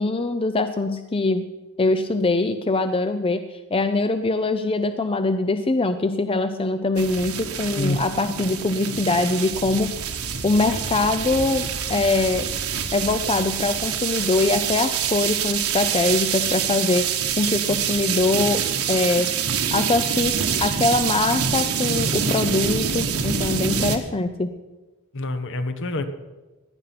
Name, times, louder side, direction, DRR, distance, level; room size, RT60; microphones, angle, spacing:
voice 1, 0.0-1.4 1.8-9.9 10.4-12.5 12.9-19.3 19.7-20.3 20.6-24.5, left 3 dB, 25° left, 9 dB, 0.5 m, -23 dB
sound 1, 7.0-24.0, right 7 dB, 70° right, 1.4 m, -26 dB
voice 2, 25.1-26.0, left 2 dB, 60° left, 9 dB, 1.2 m, -26 dB
17.0 x 10.0 x 5.9 m, 1.2 s
head